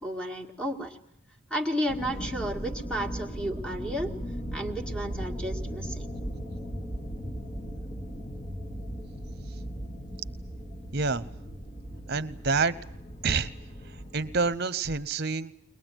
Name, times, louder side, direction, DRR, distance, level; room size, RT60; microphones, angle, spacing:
voice 1, 0.0-1.0 1.5-4.1 4.5-6.1, equal, 5° left, 4 dB, 1.9 m, -32 dB
sound 1, 1.9-14.6, equal, 30° left, 1.9 m, -37 dB
voice 2, 10.9-11.3 12.1-12.8 13.2-13.5 14.1-15.5, right 4 dB, 50° right, 15 dB, 0.9 m, -27 dB
22.0 x 21.0 x 9.1 m, 0.75 s
head